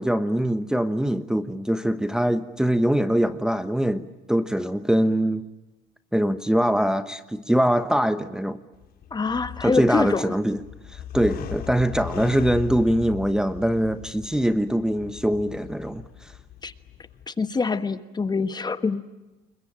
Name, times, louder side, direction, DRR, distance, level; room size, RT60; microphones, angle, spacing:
voice 1, 0.0-5.4 6.1-8.6 9.6-10.6 10.9-16.3, equal, 5° right, 9 dB, 1.1 m, -23 dB
sound 1, 8.7-17.2, left 10 dB, 65° left, 4.2 m, -38 dB
voice 2, 9.1-10.3 16.6-16.7 17.3-19.0, left 4 dB, 25° left, 12 dB, 1.4 m, -25 dB
29.5 x 22.0 x 8.8 m, 1.1 s
cardioid pair, 110°, 17 cm